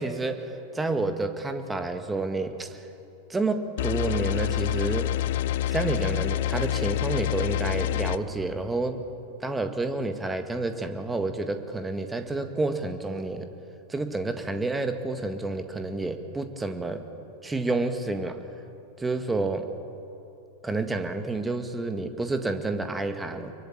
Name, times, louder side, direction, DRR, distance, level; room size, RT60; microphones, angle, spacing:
voice 1, 0.0-2.9 3.3-5.1 5.7-9.0 9.4-13.5 13.9-17.0 17.4-18.4 19.0-19.7 20.6-23.5, right 2 dB, 10° right, 7 dB, 1.8 m, -29 dB
sound 1, 3.8-8.2, left 13 dB, 55° left, 0.7 m, -27 dB
25.0 x 23.0 x 8.8 m, 2.8 s
figure-of-eight pair, 90°, 0 cm